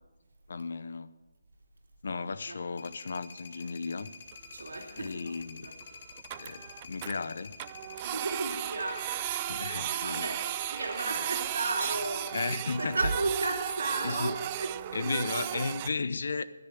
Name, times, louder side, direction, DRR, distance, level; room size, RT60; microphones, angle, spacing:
voice 1, 0.5-1.1 2.0-4.1 5.0-5.7 6.4-7.5 9.5-10.3 12.3-13.0 14.0-14.3 14.9-16.4, left 4 dB, 70° left, 15 dB, 0.7 m, -34 dB
sound 1, 2.8-12.9, left 5 dB, 50° left, 1.7 m, -48 dB
Printer, 4.3-4.4 4.6-4.7 5.1-5.2 5.4-5.5 5.8-5.9 6.1-7.1 7.6-15.9, right 14 dB, 25° right, 0.3 m, -35 dB
voice 2, 4.5-5.3 5.6-5.7 8.0-9.1 9.8-12.3 12.8-15.2, right 2 dB, 90° right, 2 dB, 3.0 m, -34 dB
10.5 x 9.6 x 9.4 m, 1.2 s
hypercardioid pair, 160°, 0 cm